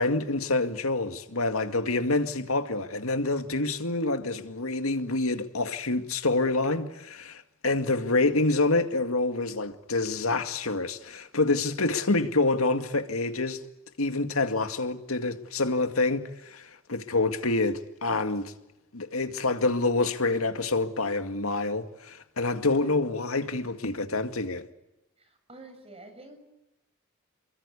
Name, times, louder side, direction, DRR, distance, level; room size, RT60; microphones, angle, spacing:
voice 1, 0.0-13.6 14.0-18.5 18.9-24.7, left 2 dB, 90° left, 2.2 m, -27 dB
voice 2, 25.5-26.4, right 2 dB, 30° right, 7.0 m, -49 dB
29.0 x 23.0 x 8.4 m
head